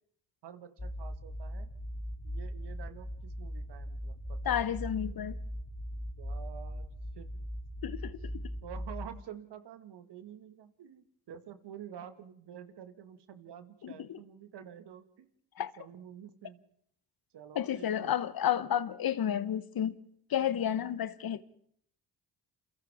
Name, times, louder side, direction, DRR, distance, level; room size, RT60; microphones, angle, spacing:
voice 1, 0.4-1.7 2.2-4.6 5.9-7.3 8.2-15.3 15.8-16.6 17.3-18.1 20.6-20.8, right 9 dB, 60° right, 1.9 m, -49 dB
sound 1, 0.8-9.1, equal, 15° left, 2.5 m, -39 dB
voice 2, 4.4-5.4 7.8-8.4 13.8-14.2 15.6-15.7 17.5-20.0 20.3-21.4, left 10 dB, 50° left, 1.2 m, -31 dB
28.5 x 28.5 x 3.6 m
hypercardioid pair, 45°, 46 cm